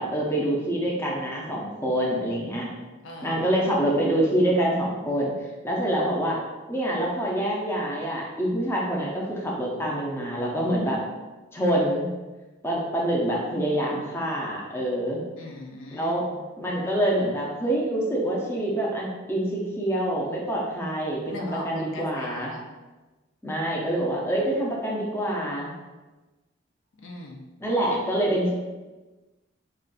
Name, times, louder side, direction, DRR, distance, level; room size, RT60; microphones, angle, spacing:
voice 1, 0.0-2.7 3.2-5.3 5.6-6.4 6.7-11.0 11.5-12.1 12.6-15.2 15.9-16.2 16.6-22.5 23.4-25.7 27.6-28.5, right 1 dB, 15° left, -3 dB, 0.5 m, -26 dB
voice 2, 3.0-3.4 15.4-16.4 21.3-22.6 27.0-27.5, left 1 dB, 75° left, 0 dB, 0.5 m, -40 dB
2.5 x 2.3 x 3.8 m, 1.2 s
head